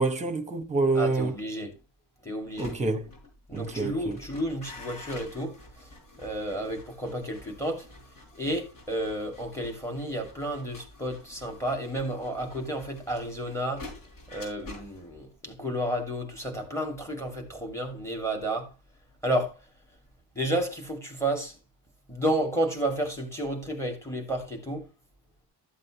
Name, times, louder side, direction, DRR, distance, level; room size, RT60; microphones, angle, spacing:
voice 1, 0.0-1.3 2.6-3.0 3.5-4.2, right 3 dB, 15° right, 1.2 m, -27 dB
voice 2, 0.9-1.7 2.2-2.7 3.5-5.6 6.2-7.9 8.3-13.9 14.3-18.7 19.2-19.5 20.3-21.6 22.1-24.8, right 1 dB, 5° left, 2.3 m, -31 dB
sound 1, 2.4-19.4 19.7-20.1, left 2 dB, 50° left, 5.5 m, -49 dB
13.0 x 7.6 x 3.0 m
wide cardioid pair, 175°, 44 cm